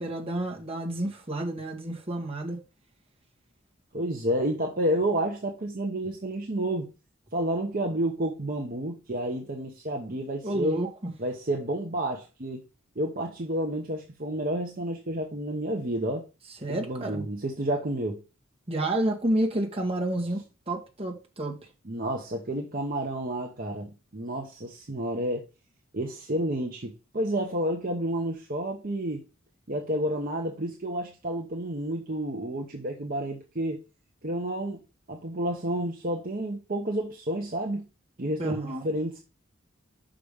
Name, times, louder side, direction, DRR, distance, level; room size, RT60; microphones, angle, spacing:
voice 1, 0.0-2.6 10.4-11.1 16.6-17.2 18.7-21.6 38.4-38.9, right 1 dB, 30° right, 1.7 m, -30 dB
voice 2, 3.9-6.9 7.3-10.8 11.2-12.6 13.0-16.2 16.7-18.2 21.8-25.5 25.9-29.2 29.7-33.8 34.2-34.8 35.1-37.8 38.2-39.2, right 1 dB, 45° right, 1.0 m, -30 dB
5.9 x 5.1 x 5.2 m
head